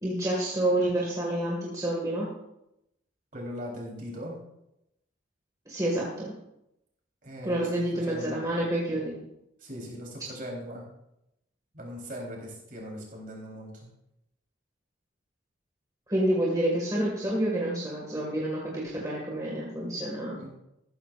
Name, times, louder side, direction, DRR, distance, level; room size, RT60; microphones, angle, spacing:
voice 1, 0.0-2.3 5.7-6.3 7.4-9.2 16.1-20.4, right 1 dB, 20° right, -4 dB, 2.0 m, -28 dB
voice 2, 3.3-4.4 7.2-8.4 9.6-10.8 11.7-13.9 20.3-20.5, equal, 45° right, -2 dB, 3.9 m, -40 dB
14.0 x 13.5 x 2.6 m, 0.84 s
head